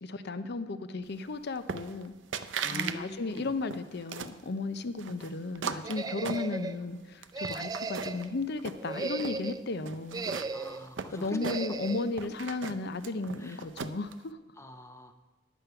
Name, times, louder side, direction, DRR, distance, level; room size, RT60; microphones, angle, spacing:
voice 1, 0.0-2.1 2.7-10.2 11.1-14.4, left 3 dB, 60° left, 11 dB, 0.6 m, -34 dB
sound 1, 1.7-2.1 2.3-3.0 3.3-4.4 5.0-6.9 7.2-8.3 8.6-9.4 9.9-11.9 12.2-14.1, right 6 dB, 70° right, 0.6 m, -38 dB
voice 2, 2.6-3.5 10.5-11.3 13.4-13.6 14.6-15.2, equal, 15° left, 7 dB, 0.8 m, -44 dB
sound 2, 5.8-6.8 7.3-8.3 8.8-9.6 10.1-10.9 11.4-12.1, right 4 dB, 20° right, 0.4 m, -36 dB
11.0 x 8.3 x 5.7 m, 1.1 s
head